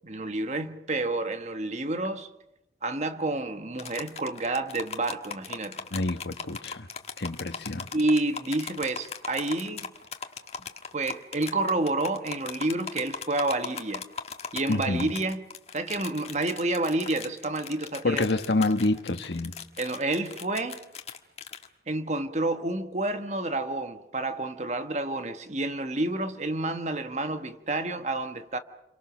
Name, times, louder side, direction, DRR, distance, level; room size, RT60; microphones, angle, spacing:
voice 1, 0.0-2.3 2.8-5.8 7.9-9.9 10.9-14.0 14.5-15.4 15.7-18.3 19.8-20.8 21.9-28.6, right 2 dB, 40° right, 1.3 m, -29 dB
sound 1, 3.8-21.7, left 6 dB, 35° left, 1.5 m, -39 dB
voice 2, 5.9-6.9 7.2-7.9 14.7-15.1 18.0-19.5, left 2 dB, 80° left, 1.4 m, -27 dB
29.0 x 23.5 x 6.3 m
head